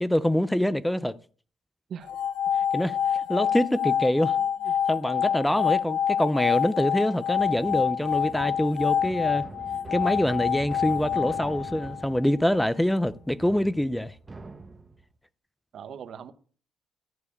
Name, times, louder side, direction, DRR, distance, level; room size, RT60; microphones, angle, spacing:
voice 1, 0.0-1.2 2.7-4.4 4.9-9.4 9.9-14.1, left 1 dB, 5° left, 0.5 m, -25 dB
sound 1, 2.0-12.2, left 8 dB, 90° left, 1.3 m, -27 dB
voice 2, 4.4-4.7 5.4-5.6 15.7-16.3, right 8 dB, 65° right, 1.0 m, -41 dB
sound 2, 7.3-15.1, right 3 dB, 25° right, 1.3 m, -44 dB
13.5 x 4.8 x 8.3 m
cardioid pair, 90°, 0 cm